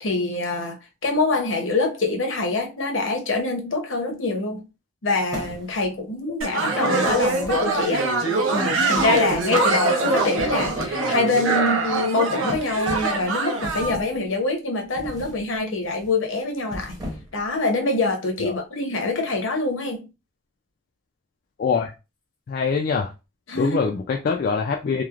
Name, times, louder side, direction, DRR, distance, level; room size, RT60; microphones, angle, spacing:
voice 1, 0.0-0.8 1.0-4.6 5.0-8.1 8.5-17.0 17.3-20.1 23.5-23.8, left 3 dB, 65° left, 0.8 m, -25 dB
sound 1, 5.3-6.0 7.0-8.0 8.9-9.6 10.2-11.0 11.4-11.6 12.5-13.2 13.6-14.2 15.0-15.4 15.8-16.1 16.6-17.5, left 1 dB, 20° right, 0.7 m, -37 dB
sound 2, 6.4-13.9, right 3 dB, 70° right, 0.7 m, -23 dB
voice 2, 21.6-21.9 22.5-23.1 23.6-25.0, left 5 dB, 45° left, 0.3 m, -23 dB
3.0 x 2.0 x 2.4 m
head